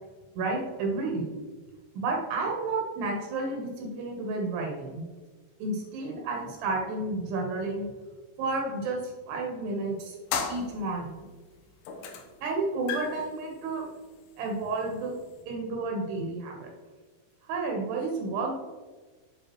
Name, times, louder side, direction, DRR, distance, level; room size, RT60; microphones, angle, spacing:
voice 1, 0.4-1.4 1.9-5.1 5.6-7.9 8.4-9.0 9.3-10.2 10.5-11.3 12.4-13.9 14.4-15.1 15.5-16.7 17.5-18.5, right 3 dB, 75° right, 0 dB, 3.2 m, -31 dB
sound 1, 10.3-11.3 11.8-12.4 12.6-15.4, left 6 dB, 85° left, 3.0 m, -36 dB
8.1 x 7.2 x 3.1 m, 1.3 s
omnidirectional pair, 4.8 m